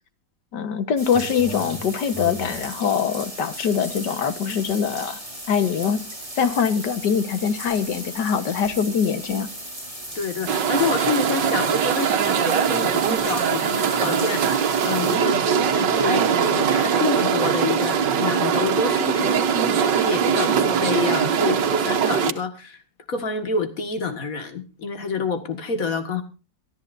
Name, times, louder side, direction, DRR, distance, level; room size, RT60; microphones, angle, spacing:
voice 1, 0.5-5.2 5.5-6.0 6.4-9.5, left 7 dB, 75° left, 11 dB, 1.9 m, -23 dB
sound 1, 1.0-15.2, right 1 dB, 20° right, 8.1 m, -36 dB
voice 2, 10.1-22.8 23.1-26.2, left 4 dB, 50° left, 8 dB, 2.3 m, -28 dB
sound 2, 10.5-22.3, right 7 dB, 80° right, 1.8 m, -21 dB
24.0 x 13.5 x 2.7 m, 0.32 s
omnidirectional pair, 1.9 m